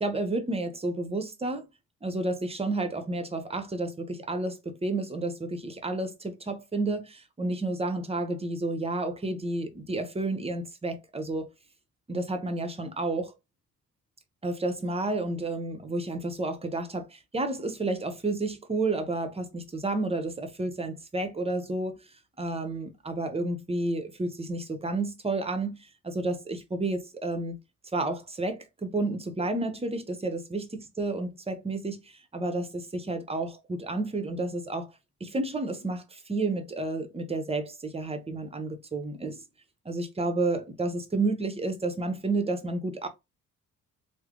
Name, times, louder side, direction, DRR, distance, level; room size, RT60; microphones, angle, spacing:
voice 1, 0.0-1.7 2.0-11.5 12.1-13.3 14.4-22.0 22.4-25.8 26.0-27.6 27.9-32.0 32.3-34.9 35.2-39.4 39.8-43.1, right 2 dB, 20° right, 0.8 m, -31 dB
3.2 x 2.1 x 3.7 m
cardioid pair, 90°, 30 cm